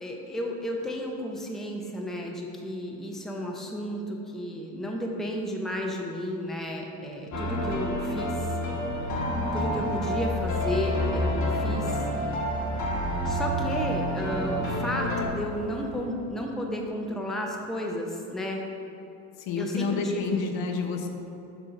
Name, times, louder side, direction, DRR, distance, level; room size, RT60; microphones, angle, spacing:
voice 1, 0.0-8.6 9.5-12.0 13.3-18.7 19.6-20.4, equal, ahead, 0 dB, 0.7 m, -33 dB
sound 1, 7.3-15.3, equal, 35° left, 1.3 m, -28 dB
sound 2, 8.7-16.1, right 3 dB, 70° right, 1.0 m, -44 dB
voice 2, 19.4-21.1, left 4 dB, 60° left, 4 dB, 0.9 m, -29 dB
7.0 x 3.6 x 5.2 m, 2.9 s
supercardioid pair, 90°, 49 cm